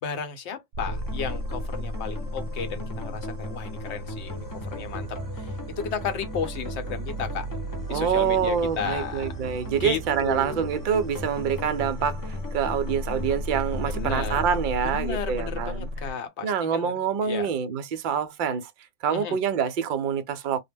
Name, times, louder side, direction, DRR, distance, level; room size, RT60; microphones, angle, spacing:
voice 1, 0.0-7.5 7.9-9.3 9.6-10.7 13.9-14.6 14.8-16.9 17.2-17.5 19.1-19.4, left 6 dB, 70° left, 0.9 m, -34 dB
sound 1, 0.7-16.1, right 1 dB, 90° right, 0.9 m, -35 dB
sound 2, 0.9-15.9, left 2 dB, 35° left, 0.3 m, -39 dB
voice 2, 7.9-15.9 16.4-18.7 19.0-20.6, right 7 dB, 60° right, 0.5 m, -26 dB
2.2 x 2.1 x 3.3 m
omnidirectional pair, 1.2 m